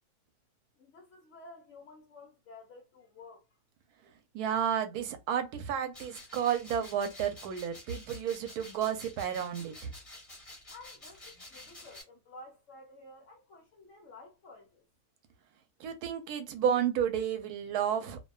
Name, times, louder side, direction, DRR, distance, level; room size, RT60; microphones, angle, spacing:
voice 1, 0.8-3.6 10.7-14.8, left 2 dB, 60° left, 1.0 m, -52 dB
voice 2, 4.3-9.9 15.8-18.2, right 8 dB, 90° right, 1.1 m, -31 dB
sound 1, 5.9-12.0, left 1 dB, 25° left, 1.2 m, -50 dB
2.7 x 2.1 x 2.2 m
omnidirectional pair, 1.6 m